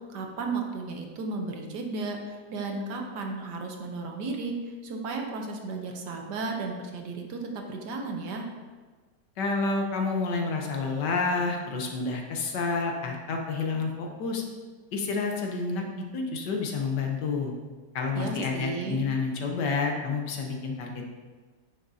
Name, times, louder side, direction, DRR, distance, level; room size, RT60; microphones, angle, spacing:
voice 1, 0.1-8.4 18.1-19.0, right 3 dB, 65° right, 2 dB, 1.4 m, -34 dB
voice 2, 9.4-14.4 14.9-17.5 17.9-21.1, left 4 dB, 70° left, 1 dB, 1.4 m, -29 dB
9.2 x 6.2 x 2.7 m, 1.4 s
omnidirectional pair, 2.0 m